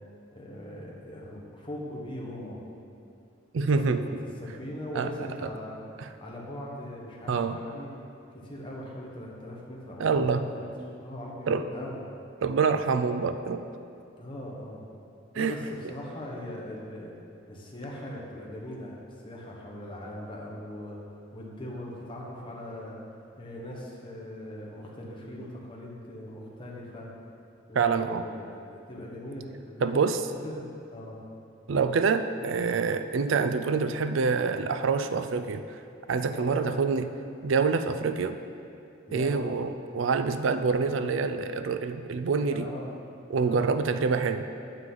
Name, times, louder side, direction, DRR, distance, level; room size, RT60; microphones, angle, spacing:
voice 1, 0.3-2.6 3.6-4.1 4.4-5.8 6.2-7.9 8.4-10.7 11.0-12.0 14.2-14.8 15.3-17.1 17.5-19.0 19.2-21.0 21.3-23.0 23.4-27.1 27.7-29.8 30.4-30.6 30.9-31.2 36.3-36.8 39.1-39.5 40.7-41.0 42.5-42.9 43.4-43.7, left 1 dB, 25° left, -3 dB, 1.3 m, -40 dB
voice 2, 3.5-4.1 4.9-5.3 6.0-6.1 7.3-7.6 10.0-10.5 11.5-11.7 12.4-13.6 15.3-15.5 27.7-28.2 29.8-30.2 31.7-35.8 36.1-37.1 37.4-38.4 39.1-42.7 43.3-44.4, right 5 dB, 70° right, 10 dB, 0.4 m, -26 dB
9.0 x 7.5 x 3.9 m, 2.6 s
head